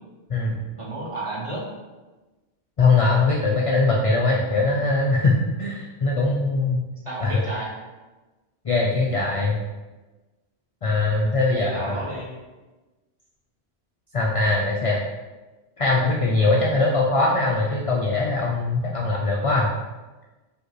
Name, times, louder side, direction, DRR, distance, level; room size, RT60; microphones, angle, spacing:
voice 1, 0.8-1.6 7.0-7.7 11.1-12.3, right 2 dB, 30° right, -7 dB, 1.0 m, -32 dB
voice 2, 2.8-6.8 7.2-7.4 8.6-9.6 10.8-12.1 14.1-15.0 15.8-19.7, left 3 dB, 65° left, -3 dB, 0.3 m, -21 dB
4.7 x 2.5 x 3.1 m, 1.2 s
omnidirectional pair, 1.2 m